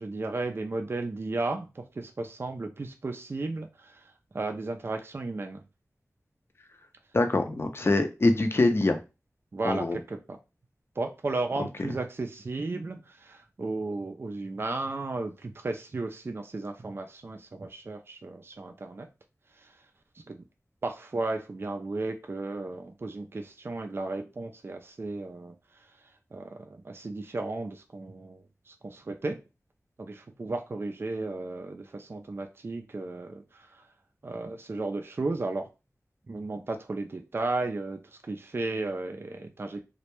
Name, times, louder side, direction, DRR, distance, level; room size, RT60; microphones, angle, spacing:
voice 1, 0.0-5.6 9.5-10.4 11.0-19.1 19.6-19.8 20.3-20.4 20.8-25.9 26.3-29.4 30.0-33.9 34.2-35.7 36.3-39.8, right 2 dB, 45° right, 5 dB, 0.3 m, -34 dB
voice 2, 7.1-9.0 9.6-10.0, left 2 dB, 45° left, 7 dB, 0.4 m, -24 dB
2.2 x 2.0 x 2.9 m, 0.28 s
wide cardioid pair, 65°, 6 cm